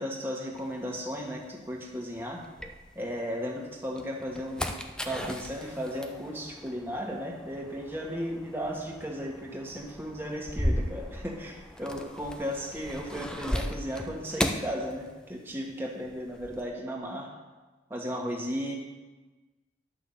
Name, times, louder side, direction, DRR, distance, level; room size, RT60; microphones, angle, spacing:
voice 1, 0.0-2.4 2.9-4.7 5.0-17.3 17.9-18.7, equal, 10° right, -2 dB, 1.7 m, -35 dB
sound 1, 0.6-3.3 3.8-15.6 15.8-16.6, equal, 5° left, 0.5 m, -36 dB
10.5 x 6.0 x 7.1 m, 1.2 s
head